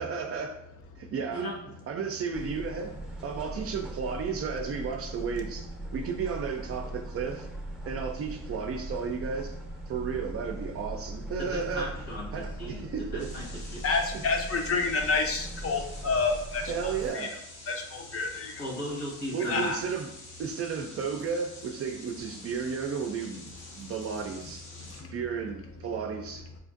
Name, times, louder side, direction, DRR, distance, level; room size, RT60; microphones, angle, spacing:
voice 1, 0.0-0.6 1.1-1.5 1.9-2.9 3.2-7.5 7.9-9.6 9.9-11.9 12.3-13.3 16.6-17.4 19.3-20.1 20.4-23.4 23.7-24.7 25.1-26.5, right 6 dB, 50° right, 4 dB, 0.4 m, -33 dB
voice 2, 1.3-1.8 11.4-13.8 18.6-19.7, equal, 70° left, -3 dB, 1.4 m, -37 dB
sound 1, 2.3-17.1, right 1 dB, 5° right, 0.6 m, -40 dB
sound 2, 13.2-25.0, left 2 dB, 85° left, 1.0 m, -48 dB
voice 3, 13.8-17.3 17.7-18.6 19.5-19.8 24.8-25.2, left 4 dB, 50° left, 4 dB, 0.6 m, -29 dB
4.4 x 2.5 x 2.4 m, 0.80 s
cardioid pair, 90°, 30 cm